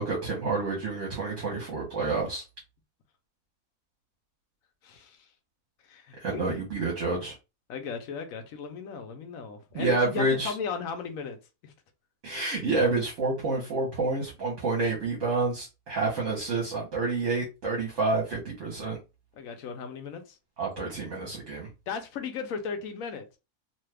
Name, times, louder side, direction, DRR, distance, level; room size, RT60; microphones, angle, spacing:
voice 1, 0.0-2.4 6.2-7.4 9.7-10.5 12.2-19.0 20.6-21.7, right 3 dB, 60° right, 1.2 m, -28 dB
voice 2, 4.8-5.3 5.8-6.5 7.7-11.4 11.6-11.7 19.3-20.4 21.9-23.2, left 5 dB, 70° left, 1.1 m, -36 dB
2.8 x 2.3 x 3.2 m
omnidirectional pair, 1.5 m